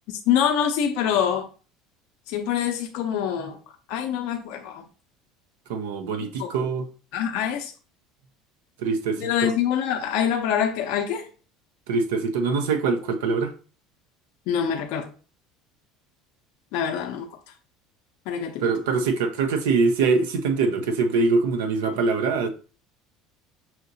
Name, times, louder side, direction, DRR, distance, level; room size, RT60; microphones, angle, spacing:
voice 1, 0.1-1.5 2.3-3.6 3.9-4.8 6.4-6.5 7.1-7.7 9.2-11.3 14.5-15.1 16.7-17.3 18.3-18.7, left 8 dB, 70° left, 0.5 m, -25 dB
voice 2, 5.7-6.9 8.8-9.5 11.9-13.5 18.6-22.5, right 4 dB, 80° right, 0.5 m, -23 dB
5.7 x 2.7 x 2.6 m
hypercardioid pair, 85°, 0 cm